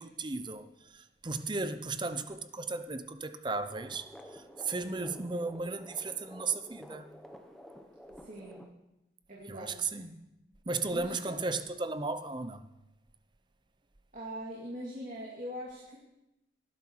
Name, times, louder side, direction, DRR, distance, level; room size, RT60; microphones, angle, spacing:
voice 1, 0.0-7.1 9.5-10.3 10.7-12.6, right 3 dB, 25° right, 0.7 m, -35 dB
sound 1, 3.6-8.7, equal, ahead, 1.0 m, -51 dB
voice 2, 8.2-8.7 9.3-10.0 10.9-11.5 14.1-16.0, equal, 45° right, 2.6 m, -42 dB
18.0 x 12.0 x 4.7 m
head